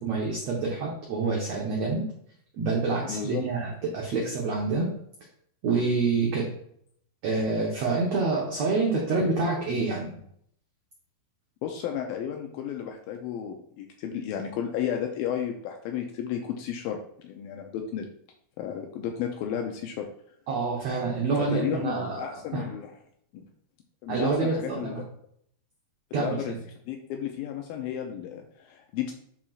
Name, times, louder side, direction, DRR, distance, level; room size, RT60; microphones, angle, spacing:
voice 1, 0.0-2.0 2.6-3.7 3.9-4.9 5.6-6.5 7.2-10.2 20.5-22.2 22.5-22.7 24.1-25.0 26.1-26.4, right 3 dB, 85° right, -2 dB, 1.4 m, -27 dB
voice 2, 3.0-3.4 11.6-18.1 18.6-20.1 21.4-22.9 23.3-23.4 24.0-25.0 26.1-26.5 26.9-29.1, left 9 dB, 80° left, 3 dB, 2.1 m, -33 dB
10.0 x 4.4 x 2.4 m, 0.67 s
omnidirectional pair, 4.6 m